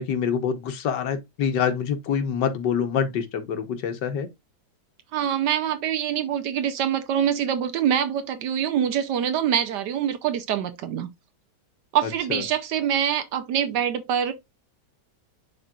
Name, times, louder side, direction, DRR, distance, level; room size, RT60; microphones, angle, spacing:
voice 1, 0.0-4.3 12.3-12.4, left 7 dB, 80° left, 1.6 m, -26 dB
voice 2, 5.1-11.1 11.9-14.3, right 9 dB, 80° right, 1.3 m, -25 dB
11.0 x 3.7 x 2.4 m
omnidirectional pair, 1.9 m